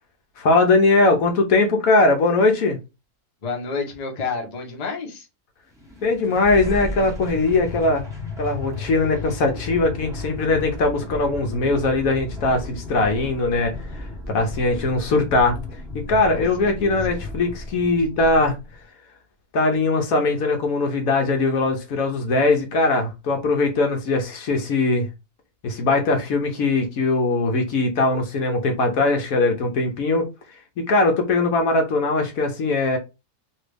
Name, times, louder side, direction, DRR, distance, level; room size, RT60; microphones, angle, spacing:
voice 1, 0.4-2.8 6.0-8.0 8.4-15.6 16.1-18.6 19.5-25.1 25.6-30.3 30.8-33.0, left 3 dB, 65° left, 1.1 m, -20 dB
voice 2, 3.4-5.3 16.4-17.0, left 4 dB, 35° left, 0.7 m, -30 dB
sound 1, 5.7-18.8, left 2 dB, 5° right, 0.5 m, -34 dB
3.1 x 2.3 x 3.3 m
omnidirectional pair, 1.7 m